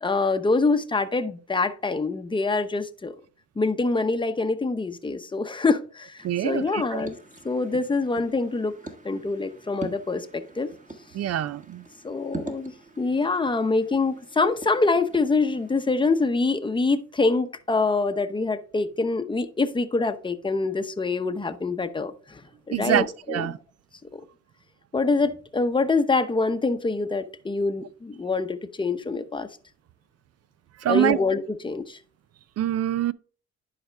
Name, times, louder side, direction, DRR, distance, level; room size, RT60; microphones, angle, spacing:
voice 1, 0.0-3.1 3.6-7.2 7.4-8.8 9.0-10.7 12.0-22.4 22.7-23.5 24.1-24.2 24.9-29.5 30.9-32.0, left 3 dB, 15° left, 0.8 m, -25 dB
sound 1, 6.2-16.2, right 2 dB, 25° right, 1.5 m, -43 dB
voice 2, 6.2-7.1 11.1-11.8 22.7-23.6 30.8-31.2 32.6-33.1, right 11 dB, 55° right, 0.5 m, -25 dB
11.0 x 5.0 x 3.4 m
cardioid pair, 90°, 30 cm